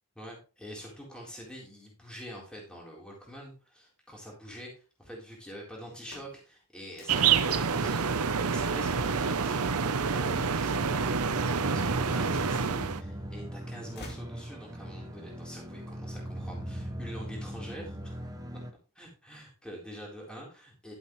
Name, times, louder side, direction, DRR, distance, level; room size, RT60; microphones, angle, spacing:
voice 1, 0.2-18.2 19.0-20.9, equal, 5° left, -2 dB, 4.0 m, -45 dB
sound 1, 5.9-11.7 12.3-13.1 13.4-15.0, left 1 dB, 50° left, 2.8 m, -53 dB
sound 2, 7.1-13.0, right 6 dB, 75° right, 0.8 m, -27 dB
sound 3, 10.2-18.7, equal, 15° right, 1.1 m, -40 dB
12.0 x 9.2 x 3.2 m, 0.34 s
head